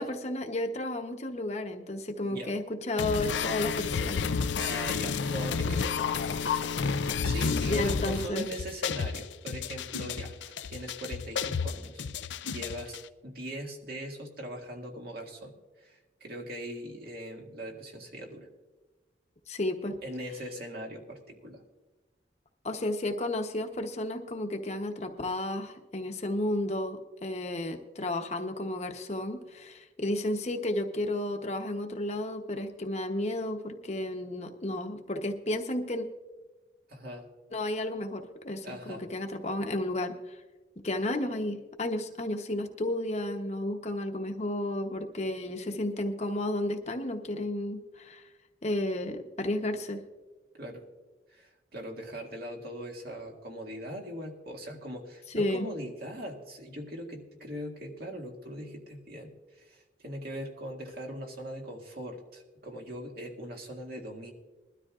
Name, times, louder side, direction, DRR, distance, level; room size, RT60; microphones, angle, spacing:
voice 1, 0.0-4.3 7.6-8.5 19.5-20.0 22.6-36.1 37.5-40.4 40.8-48.2 48.6-50.0 55.3-55.7, left 1 dB, 40° left, 5 dB, 0.9 m, -32 dB
voice 2, 2.2-2.6 4.6-6.0 7.2-18.5 20.0-21.6 36.9-37.3 38.6-39.0 50.5-50.8 51.3-64.3, equal, 60° right, 1 dB, 2.0 m, -41 dB
sound 1, 3.0-13.0, left 5 dB, 90° left, 0.5 m, -31 dB
21.5 x 12.5 x 2.4 m, 1.2 s
head